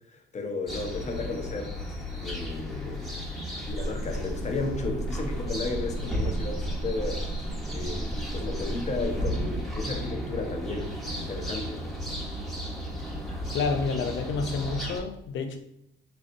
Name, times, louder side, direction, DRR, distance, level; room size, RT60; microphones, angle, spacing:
voice 1, 0.1-1.8 2.2-3.1 3.7-7.2 7.7-11.8, left 3 dB, 35° left, 3 dB, 0.9 m, -33 dB
sound 1, 0.7-15.0, equal, ahead, 1.1 m, -34 dB
sound 2, 3.7-9.2, right 2 dB, 30° right, 1.6 m, -36 dB
voice 2, 13.5-15.6, left 4 dB, 70° left, 6 dB, 0.7 m, -29 dB
4.5 x 3.9 x 2.6 m, 0.77 s
cardioid pair, 90°, 20 cm